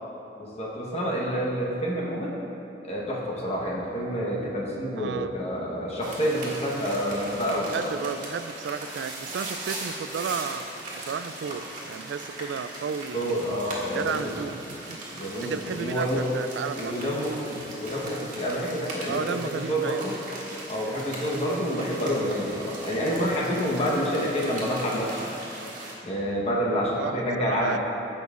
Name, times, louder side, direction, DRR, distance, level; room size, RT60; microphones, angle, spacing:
voice 1, 0.4-2.3 2.8-7.9 13.1-14.4 15.1-16.3 16.8-20.2 20.7-25.3 26.0-27.8, equal, 35° left, -4 dB, 1.2 m, -28 dB
voice 2, 5.0-5.3 7.7-10.6 10.9-13.4 13.9-15.0 15.4-16.1 16.3-17.1 19.1-20.0 26.9-27.1 27.4-27.8, right 6 dB, 80° right, 11 dB, 0.3 m, -33 dB
sound 1, 6.0-25.9, right 2 dB, 45° right, 1.5 m, -39 dB
15.0 x 5.5 x 2.5 m, 2.9 s
head